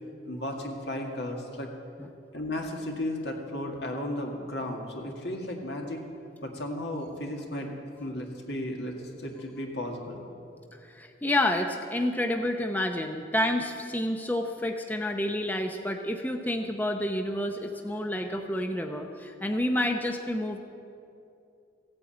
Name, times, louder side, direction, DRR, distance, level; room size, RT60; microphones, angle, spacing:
voice 1, 0.2-1.7 2.3-6.1 6.4-10.2, left 1 dB, 70° left, 1 dB, 2.0 m, -34 dB
voice 2, 10.8-20.6, left 1 dB, 10° left, 4 dB, 0.6 m, -29 dB
16.0 x 8.8 x 8.5 m, 2.6 s
head